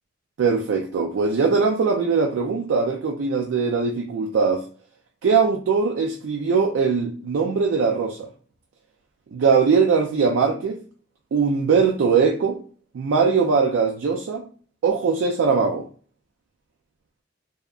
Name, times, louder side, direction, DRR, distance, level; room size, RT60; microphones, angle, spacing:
voice 1, 0.4-4.6 5.2-8.3 9.3-10.8 11.3-12.6 12.9-14.4 14.8-15.9, right 5 dB, 90° right, 0.4 m, -21 dB
2.7 x 2.3 x 2.2 m
head